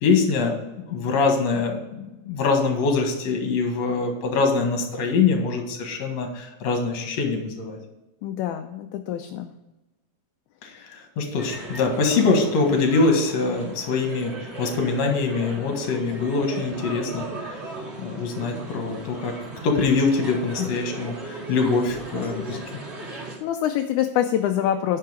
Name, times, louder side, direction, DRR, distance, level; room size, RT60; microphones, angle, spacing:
voice 1, 0.0-7.8 10.6-17.6 18.0-19.3 19.6-22.6, left 4 dB, 60° left, 3 dB, 2.6 m, -24 dB
voice 2, 8.2-9.5 20.6-20.7 23.1-25.0, left 11 dB, 80° left, 6 dB, 1.9 m, -25 dB
sound 1, 11.4-23.4, right 2 dB, 25° right, 1.6 m, -37 dB
10.5 x 5.7 x 4.9 m, 1.0 s
omnidirectional pair, 3.7 m